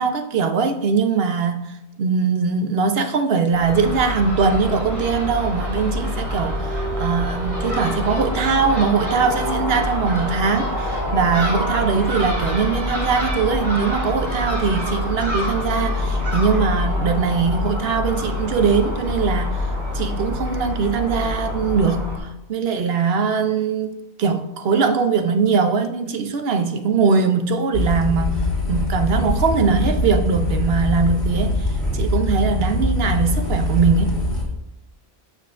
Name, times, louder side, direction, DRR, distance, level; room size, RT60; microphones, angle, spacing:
voice 1, 0.0-1.6 2.0-19.6 19.9-28.4 28.7-31.7 31.9-34.1, right 5 dB, 70° right, 0.9 m, -21 dB
Crow / Gull seagull, 3.5-22.2, left 1 dB, 40° right, 2.5 m, -25 dB
sound 1, 27.7-34.4, left 1 dB, 70° left, 2.7 m, -23 dB
12.5 x 6.9 x 2.5 m
omnidirectional pair, 1.1 m